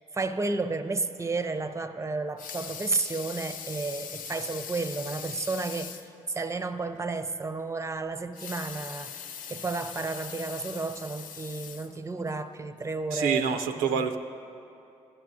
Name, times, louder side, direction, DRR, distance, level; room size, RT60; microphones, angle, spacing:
voice 1, 0.0-9.2 9.5-13.4 13.8-14.2, right 3 dB, 20° right, 11 dB, 0.5 m, -32 dB
Water tap faucet / Sink (filling or washing) / Liquid, 2.2-6.1 6.6-6.7 7.0-7.1 8.2-12.4 12.9-13.0, left 7 dB, 65° left, 0.4 m, -41 dB
voice 2, 13.1-14.2, right 6 dB, 85° right, 8 dB, 0.4 m, -27 dB
14.5 x 11.0 x 2.6 m, 2.6 s
hypercardioid pair, 40°, 15 cm